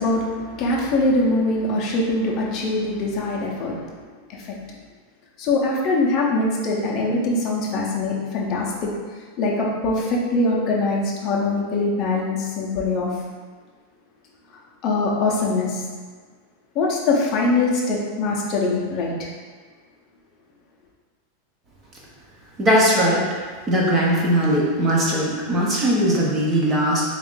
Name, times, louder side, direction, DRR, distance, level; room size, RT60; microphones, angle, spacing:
voice 1, 0.0-4.0 4.3-4.5 5.4-8.9 9.4-13.1 14.8-15.8 16.7-19.3, left 2 dB, 25° left, -3 dB, 0.6 m, -23 dB
voice 2, 22.6-23.2 23.7-27.0, equal, 15° right, -4 dB, 0.5 m, -19 dB
3.5 x 2.4 x 3.6 m, 1.5 s
supercardioid pair, 175°, 0 cm